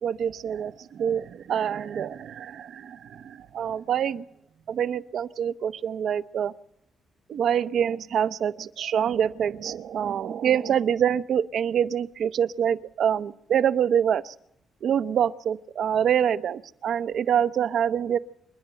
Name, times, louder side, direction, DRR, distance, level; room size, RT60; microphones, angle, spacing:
voice 1, 0.0-4.3 4.7-6.5 7.3-14.3 14.8-18.2, right 9 dB, 60° right, 13 dB, 0.7 m, -26 dB
27.0 x 11.0 x 9.0 m, 0.78 s
cardioid pair, 145°, 0 cm